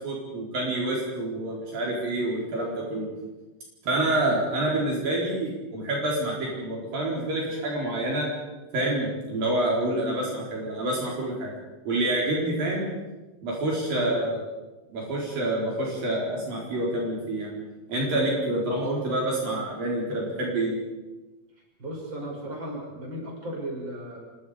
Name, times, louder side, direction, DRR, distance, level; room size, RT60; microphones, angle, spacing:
voice 1, 0.0-3.1 3.8-8.3 8.7-11.5 11.9-12.9 13.4-14.4 14.9-17.5 17.9-20.8, right 1 dB, 65° right, -3 dB, 6.0 m, -27 dB
voice 2, 13.9-14.3 18.4-18.5 21.8-24.2, right 1 dB, 30° right, -1 dB, 7.2 m, -36 dB
27.5 x 23.5 x 5.1 m, 1.1 s
omnidirectional pair, 4.3 m